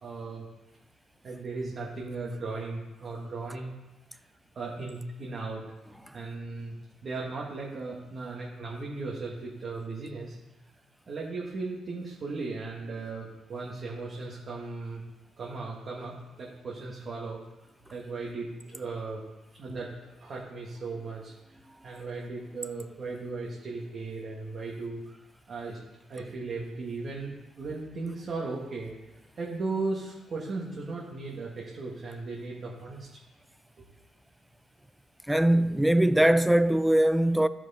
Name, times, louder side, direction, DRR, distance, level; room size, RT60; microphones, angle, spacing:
voice 1, 0.0-0.4 1.2-3.7 4.5-5.6 6.1-6.7 7.0-10.4 11.1-15.0 15.4-17.4 17.9-19.2 19.6-21.3 21.8-25.2 25.5-25.8 26.1-28.9 29.4-33.1 33.8-33.9, right 3 dB, 50° right, 1.8 m, -36 dB
voice 2, 35.3-37.5, right 1 dB, 5° right, 0.5 m, -21 dB
13.0 x 6.2 x 4.3 m
cardioid pair, 90°, 0 cm